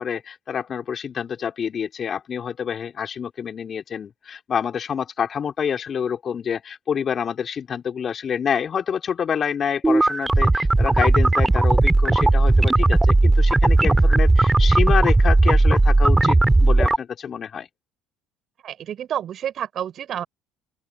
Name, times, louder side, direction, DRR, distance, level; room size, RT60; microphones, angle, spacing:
voice 1, 0.0-17.7, left 7 dB, 45° left, 4.5 m, -27 dB
sound 1, 9.8-17.0, right 2 dB, 15° right, 3.4 m, -16 dB
voice 2, 18.6-20.2, right 10 dB, 50° right, 5.1 m, -29 dB
open air
hypercardioid pair, 65°, 0 cm